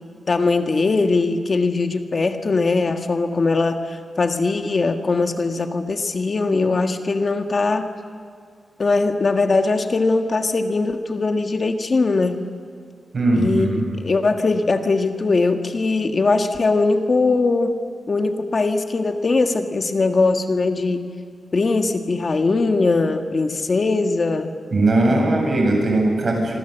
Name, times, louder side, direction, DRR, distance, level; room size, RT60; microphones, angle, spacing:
voice 1, 0.3-7.9 8.8-12.4 13.3-17.8 18.1-21.0 21.5-24.5, left 3 dB, 40° left, 6 dB, 1.5 m, -20 dB
voice 2, 13.1-13.7 24.7-26.6, right 2 dB, 50° right, 1 dB, 7.2 m, -19 dB
26.5 x 25.5 x 8.1 m, 2.2 s
wide cardioid pair, 120°, 0 cm